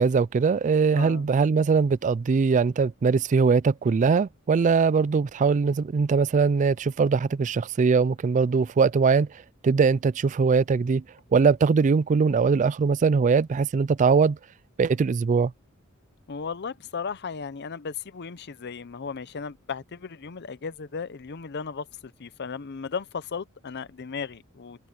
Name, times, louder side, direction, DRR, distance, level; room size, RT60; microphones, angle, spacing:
voice 1, 0.0-9.3 9.6-11.0 11.3-14.4 14.8-15.5, right 5 dB, 35° right, 0.3 m, -21 dB
voice 2, 0.9-1.3 16.3-24.9, left 5 dB, 50° left, 0.6 m, -35 dB
head